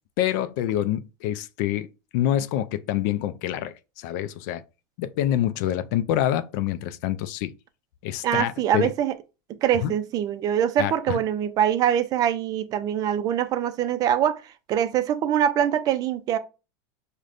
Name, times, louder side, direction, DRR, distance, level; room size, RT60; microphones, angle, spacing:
voice 1, 0.2-1.9 2.1-4.6 5.0-7.5 8.0-8.9 9.8-9.9 10.8-11.2, left 12 dB, 60° left, 0.3 m, -26 dB
voice 2, 8.2-9.1 9.6-14.4 14.7-16.4, right 10 dB, 35° right, 0.4 m, -23 dB
4.9 x 2.1 x 2.5 m
supercardioid pair, 130°, 11 cm